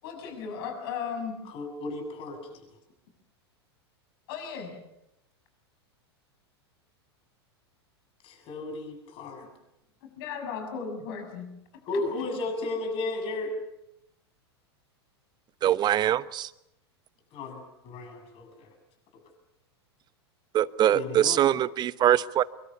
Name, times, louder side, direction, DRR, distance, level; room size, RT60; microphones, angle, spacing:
voice 1, 0.0-1.4 4.3-4.8 10.0-11.5 11.9-12.0, left 6 dB, 60° left, 6 dB, 6.9 m, -36 dB
voice 2, 1.5-2.6 8.2-9.5 11.9-13.5 17.3-18.7 20.9-21.4, left 2 dB, 40° left, 5 dB, 7.7 m, -34 dB
voice 3, 15.6-16.5 20.5-22.4, right 11 dB, 30° right, 16 dB, 1.0 m, -23 dB
26.0 x 23.5 x 7.1 m, 0.85 s
hypercardioid pair, 100°, 14 cm